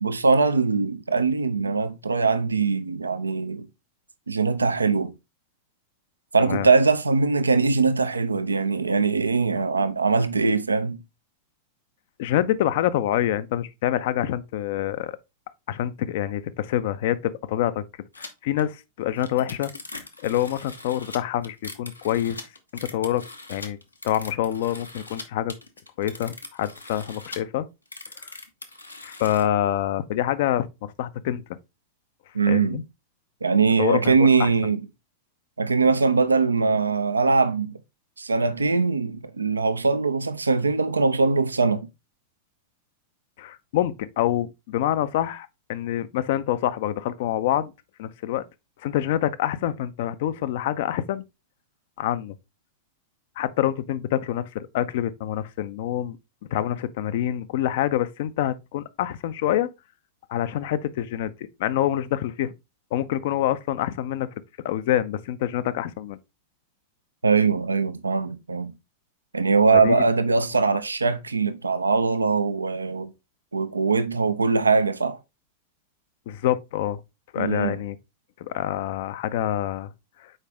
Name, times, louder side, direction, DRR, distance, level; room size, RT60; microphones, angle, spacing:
voice 1, 0.0-3.7 4.3-5.1 6.3-11.0 32.3-32.8 33.4-34.8 35.6-37.8 38.2-41.9 67.2-68.7 69.3-73.1 73.5-75.2 77.4-77.8, right 4 dB, 80° right, 0.6 m, -22 dB
voice 2, 12.2-15.2 15.7-17.8 18.2-19.7 20.2-22.4 22.7-23.8 24.0-25.5 26.0-27.7 28.2-28.3 29.0-31.4 32.5-32.8 33.8-34.7 43.4-47.7 48.0-48.4 48.8-51.2 52.0-52.4 53.4-56.2 56.5-59.7 60.3-62.5 62.9-64.3 64.6-66.2 69.7-70.0 76.3-77.0 77.3-78.0 78.4-79.9 80.2-80.3, left 12 dB, 55° left, 0.5 m, -26 dB
sound 1, 18.1-18.3 18.6-18.7 19.0-25.2 25.5-27.4 27.9-29.4, left 2 dB, 85° left, 1.0 m, -41 dB
6.5 x 4.9 x 3.4 m
figure-of-eight pair, 90°, 0 cm